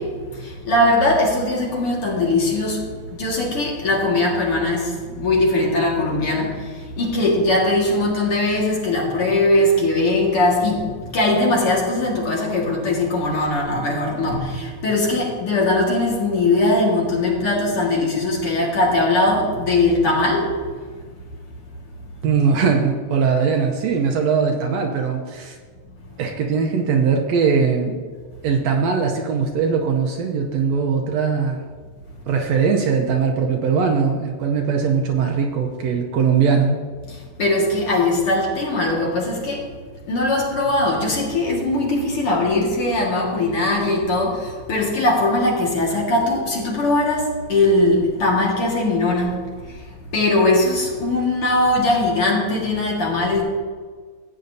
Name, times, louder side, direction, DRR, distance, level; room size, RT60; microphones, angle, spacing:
voice 1, 0.0-20.7 37.1-39.7 40.1-53.4, left 2 dB, 50° left, -3 dB, 2.5 m, -20 dB
voice 2, 22.2-25.6 26.2-28.0 28.4-31.6 32.3-36.8, right 5 dB, 70° right, 2 dB, 1.8 m, -20 dB
15.5 x 8.9 x 2.7 m, 1.6 s
omnidirectional pair, 3.5 m